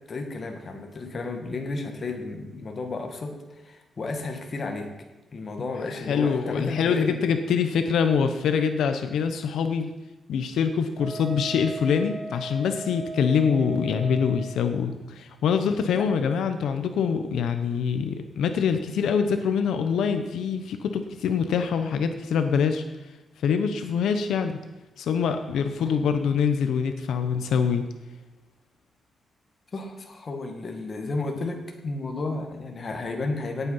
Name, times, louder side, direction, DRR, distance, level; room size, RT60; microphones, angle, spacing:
voice 1, 0.1-3.4 3.6-4.9 5.3-7.3 15.8-16.4 25.8-25.9 29.7-33.7, left 3 dB, 30° left, 3 dB, 1.8 m, -32 dB
voice 2, 5.9-9.9 10.3-22.8 23.4-24.6 25.0-27.8, left 6 dB, 80° left, 7 dB, 1.0 m, -24 dB
Wind instrument woodwind instrument, 11.0-14.6, right 2 dB, 75° right, 4.7 m, -37 dB
17.5 x 8.3 x 5.6 m, 1.1 s
wide cardioid pair, 180°, 0 cm